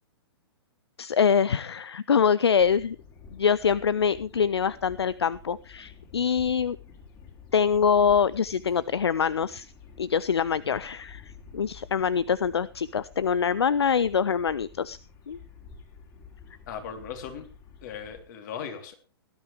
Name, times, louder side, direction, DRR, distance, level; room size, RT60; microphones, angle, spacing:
voice 1, 1.0-3.0 3.3-6.8 7.5-9.7 10.0-15.0 15.3-15.4, left 7 dB, 70° left, 19 dB, 0.5 m, -24 dB
sound 1, 2.6-18.3, left 5 dB, 30° left, 4.1 m, -50 dB
voice 2, 16.7-17.5 17.8-18.9, left 7 dB, 45° left, 5 dB, 3.5 m, -38 dB
18.5 x 12.0 x 3.4 m, 0.33 s
figure-of-eight pair, 115°, 14 cm